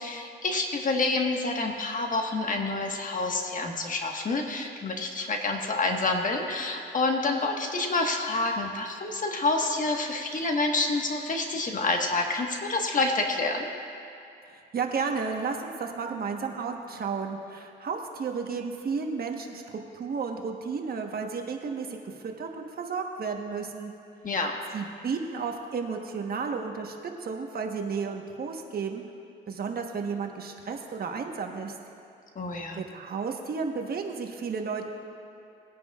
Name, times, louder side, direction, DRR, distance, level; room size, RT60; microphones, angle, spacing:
voice 1, 0.0-13.7 24.2-24.5 32.3-32.8, left 3 dB, 40° left, 2 dB, 1.4 m, -28 dB
voice 2, 14.5-19.6 19.9-22.0 22.2-23.9 24.7-27.0 27.2-29.0 29.5-31.7 32.7-34.8, right 5 dB, 50° right, 3 dB, 1.2 m, -32 dB
20.0 x 9.9 x 2.4 m, 2.7 s
cardioid pair, 90°, 20 cm